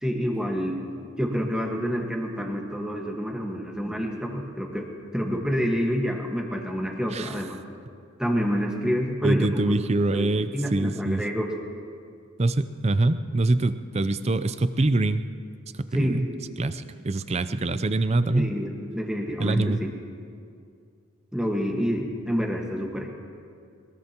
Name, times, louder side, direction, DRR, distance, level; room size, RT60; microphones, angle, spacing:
voice 1, 0.0-4.9 5.1-7.6 8.2-9.7 10.1-11.5 15.9-16.2 18.3-19.9 21.3-23.1, equal, 5° right, 0 dB, 1.4 m, -28 dB
voice 2, 9.2-11.2 12.4-15.2 15.8-16.3 16.6-18.5 19.4-19.8, right 2 dB, 30° right, 13 dB, 0.5 m, -24 dB
22.0 x 21.0 x 3.0 m, 2.3 s
head